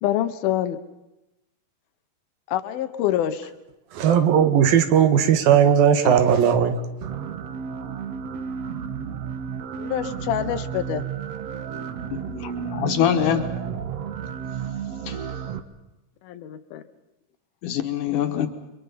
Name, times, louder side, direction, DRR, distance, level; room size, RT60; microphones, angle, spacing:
voice 1, 0.0-0.8 2.5-3.5 9.8-11.1 16.2-16.8, left 11 dB, 80° left, 2.9 m, -26 dB
voice 2, 3.9-6.7, right 8 dB, 75° right, 3.3 m, -17 dB
sound 1, 7.0-15.6, right 7 dB, 60° right, 1.9 m, -32 dB
voice 3, 12.1-13.5 15.1-15.2 17.6-18.5, left 9 dB, 65° left, 2.8 m, -24 dB
30.0 x 24.5 x 5.7 m
omnidirectional pair, 4.2 m